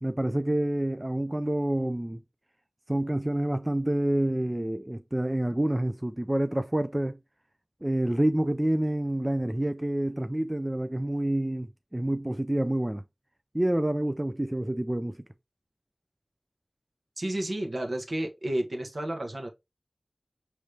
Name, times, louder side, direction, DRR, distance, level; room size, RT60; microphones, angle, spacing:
voice 1, 0.0-2.2 2.9-7.2 7.8-13.0 13.5-15.2, right 1 dB, 20° right, 0.4 m, -28 dB
voice 2, 17.2-19.5, right 1 dB, 60° right, 1.1 m, -31 dB
5.2 x 3.1 x 3.2 m
wide cardioid pair, 65°, 0 cm